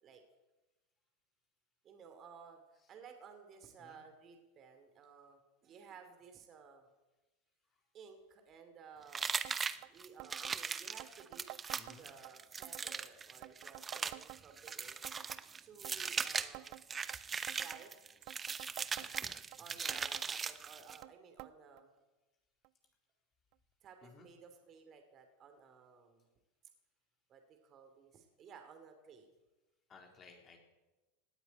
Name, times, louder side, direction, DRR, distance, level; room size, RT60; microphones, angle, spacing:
voice 1, 1.8-2.6 2.9-6.9 7.9-9.3 9.9-11.4 12.0-15.0 15.6-16.8 17.6-17.9 19.6-21.9 23.8-26.3 27.3-29.3, right 6 dB, 40° right, 6 dB, 2.8 m, -56 dB
sound 1, 9.1-21.0, right 5 dB, 25° right, 0.9 m, -39 dB
sound 2, 9.4-9.6 9.8-9.9 10.2-10.6 10.9-12.3 12.6-13.0 13.4-14.7 15.0-15.4 15.8-17.2 17.5-17.8 18.2-19.6 19.9-20.3 20.6-21.1 21.4-21.5 21.8-21.9 22.6-22.7 23.5-23.6, right 22 dB, 55° right, 0.5 m, -50 dB
voice 2, 11.7-12.1 18.9-19.4 19.6-19.8 24.0-24.3 29.9-30.6, left 4 dB, 30° left, 2 dB, 4.0 m, -59 dB
18.5 x 8.0 x 9.3 m, 1.1 s
hypercardioid pair, 95°, 0 cm